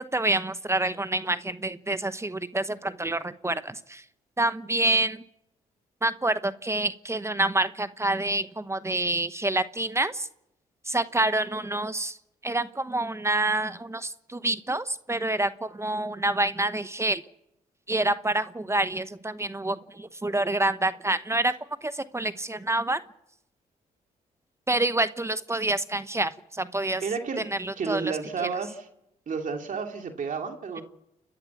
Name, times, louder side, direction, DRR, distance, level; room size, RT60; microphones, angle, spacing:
voice 1, 0.0-4.0 4.4-5.2 6.0-10.3 10.9-12.2 12.4-17.2 17.9-21.5 21.8-23.0 24.7-27.0 27.4-28.1 28.4-28.5, right 2 dB, 15° right, 13 dB, 1.0 m, -27 dB
voice 2, 27.0-27.4 27.8-28.9 29.3-30.8, right 5 dB, 55° right, 4 dB, 2.7 m, -31 dB
29.5 x 10.5 x 8.3 m, 0.83 s
supercardioid pair, 60°, 16 cm